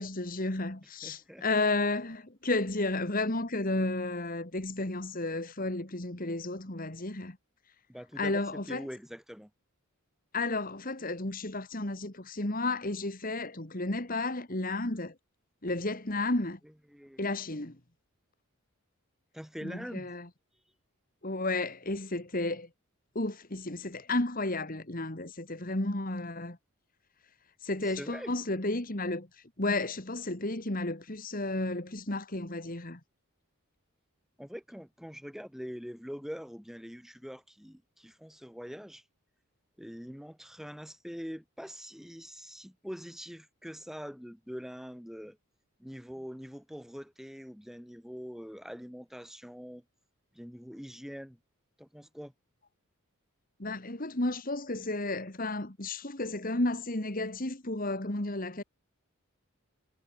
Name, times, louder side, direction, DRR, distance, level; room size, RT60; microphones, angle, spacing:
voice 1, 0.0-7.4 8.2-8.9 10.3-15.1 15.6-16.6 17.2-17.8 19.6-20.3 21.2-22.7 23.2-26.6 27.6-29.3 29.6-33.0 53.6-58.6, left 2 dB, 40° left, 2.1 m, -32 dB
voice 2, 1.0-1.4 7.9-9.5 16.9-17.3 19.3-20.1 27.8-28.3 34.4-39.0 39.8-45.4 45.8-49.8 50.3-51.4 51.8-52.3, equal, ahead, 3.2 m, -44 dB
head